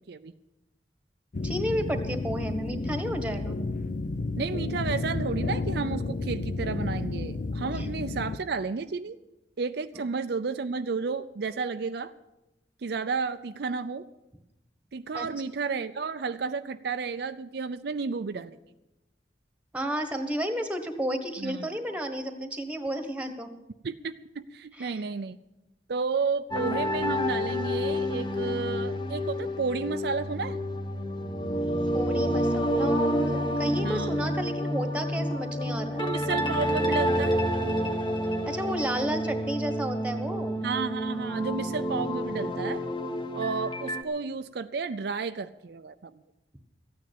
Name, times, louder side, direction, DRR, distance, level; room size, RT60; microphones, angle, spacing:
sound 1, 1.3-8.4, left 3 dB, 50° left, 0.6 m, -31 dB
voice 1, 1.4-3.6 7.7-7.9 15.1-15.3 19.7-23.5 24.7-25.0 31.9-36.0 38.4-40.6, equal, 10° right, 7 dB, 1.4 m, -32 dB
voice 2, 4.4-9.2 9.6-12.1 12.8-14.0 14.9-18.6 21.4-21.7 23.8-25.4 25.9-30.6 33.7-34.3 36.0-37.4 40.6-42.8 43.3-46.2, right 4 dB, 65° right, 10 dB, 0.5 m, -32 dB
sound 2, 26.5-44.0, equal, 25° left, 1.1 m, -29 dB
14.5 x 9.4 x 8.5 m, 0.96 s
head